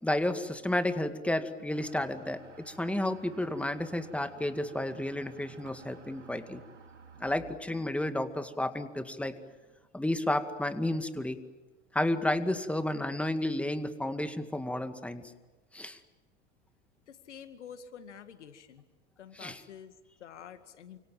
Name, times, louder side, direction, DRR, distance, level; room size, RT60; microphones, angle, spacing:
voice 1, 0.0-6.6 7.2-9.4 9.9-11.4 11.9-15.2 15.7-16.0 19.4-19.6, left 1 dB, 5° left, 9 dB, 2.2 m, -31 dB
sound 1, 1.7-9.9, right 4 dB, 90° right, 3.1 m, -55 dB
voice 2, 17.1-18.8 19.2-21.0, left 8 dB, 80° left, 10 dB, 2.2 m, -48 dB
29.0 x 26.5 x 7.5 m, 1.2 s
hypercardioid pair, 80°, 35 cm